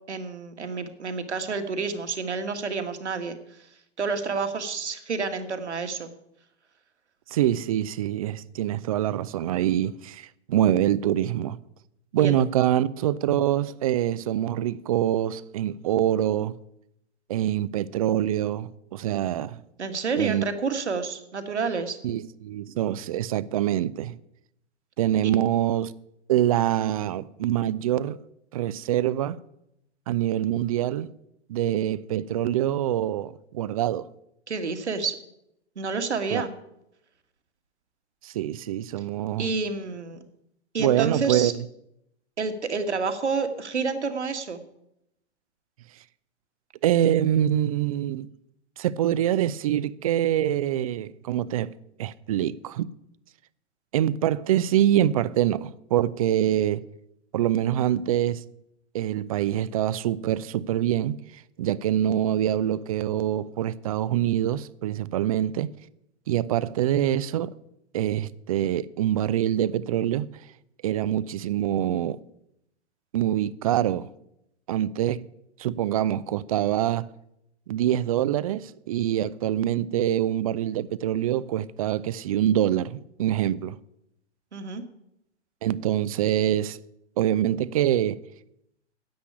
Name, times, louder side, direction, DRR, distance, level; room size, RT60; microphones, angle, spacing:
voice 1, 0.1-3.6 4.0-6.1 12.2-12.4 19.8-22.0 34.5-35.2 35.8-36.5 39.4-40.2 40.7-41.5 42.4-44.6 84.5-84.8, right 4 dB, 75° right, 1.8 m, -29 dB
voice 2, 7.3-11.6 12.1-16.6 17.3-19.6 20.2-20.4 22.0-24.2 25.0-25.9 26.3-28.2 28.5-29.4 30.1-31.1 31.5-34.1 36.3-36.4 38.2-39.5 40.8-41.6 46.8-48.3 48.8-51.7 52.0-52.9 53.9-56.8 57.3-58.4 58.9-61.2 61.6-65.7 66.3-67.5 67.9-70.3 70.8-72.2 73.1-74.1 74.7-75.3 75.6-77.1 77.7-83.8 85.6-86.8 87.2-88.2, right 11 dB, 30° right, 0.4 m, -25 dB
10.5 x 8.3 x 9.7 m
figure-of-eight pair, 115°, 35 cm